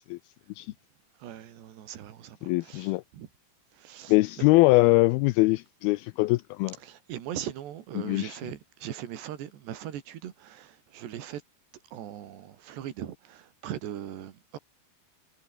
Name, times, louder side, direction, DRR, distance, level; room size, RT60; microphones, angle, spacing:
voice 1, 1.2-3.3 3.7-4.5 6.8-11.4 11.9-14.6, right 11 dB, 85° right, 4.3 m, -40 dB
voice 2, 2.4-3.0 4.1-6.8 8.0-8.4, left 21 dB, 85° left, 2.2 m, -22 dB
omnidirectional pair, 4.8 m